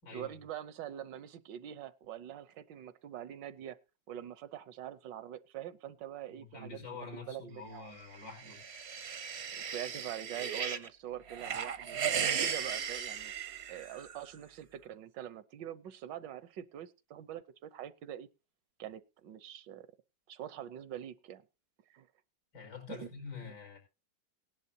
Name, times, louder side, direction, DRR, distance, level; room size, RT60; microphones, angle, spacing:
voice 1, 0.1-3.8 4.1-6.8 7.3-7.9 9.5-12.0 12.4-13.3 13.7-18.3 18.8-19.9 20.3-21.4 21.9-22.1 22.9-23.1 23.4-23.5, right 11 dB, 75° right, 1.4 m, -44 dB
voice 2, 6.3-8.6 22.5-23.8, left 4 dB, 80° left, 6.1 m, -46 dB
sound 1, 8.2-10.9 11.3-14.2, right 7 dB, 50° right, 0.8 m, -36 dB
18.0 x 11.0 x 2.8 m
omnidirectional pair, 2.0 m